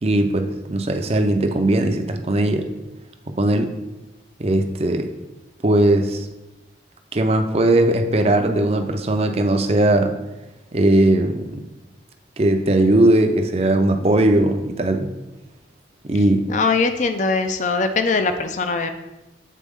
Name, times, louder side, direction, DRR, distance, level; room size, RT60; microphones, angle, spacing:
voice 1, 0.0-2.7 3.4-3.7 4.4-5.1 5.6-6.3 7.1-10.1 10.7-11.5 12.4-15.1 16.1-16.4, right 1 dB, 35° right, 6 dB, 0.5 m, -18 dB
voice 2, 16.5-18.9, left 4 dB, 40° left, 8 dB, 0.4 m, -21 dB
8.4 x 4.1 x 3.6 m, 1.0 s
head